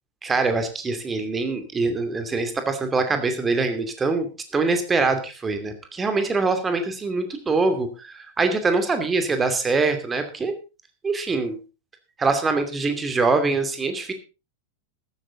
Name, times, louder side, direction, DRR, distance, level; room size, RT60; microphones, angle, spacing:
voice 1, 0.2-10.5 11.0-11.6 12.2-14.1, right 3 dB, 15° right, 7 dB, 2.6 m, -24 dB
14.5 x 13.0 x 3.9 m, 0.31 s
figure-of-eight pair, 90°, 0 cm